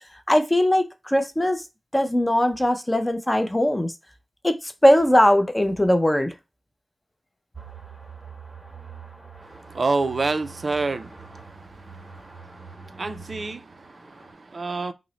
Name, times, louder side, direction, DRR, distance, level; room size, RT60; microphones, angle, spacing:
voice 1, 0.3-1.6 1.9-3.9 4.4-6.3, left 1 dB, 15° left, 0.4 m, -20 dB
sound 1, 7.5-14.3, right 5 dB, 15° right, 0.7 m, -44 dB
voice 2, 9.7-11.1 13.0-13.6 14.5-14.9, right 3 dB, 50° right, 0.3 m, -25 dB
3.7 x 2.0 x 3.0 m
wide cardioid pair, 95°, 0 cm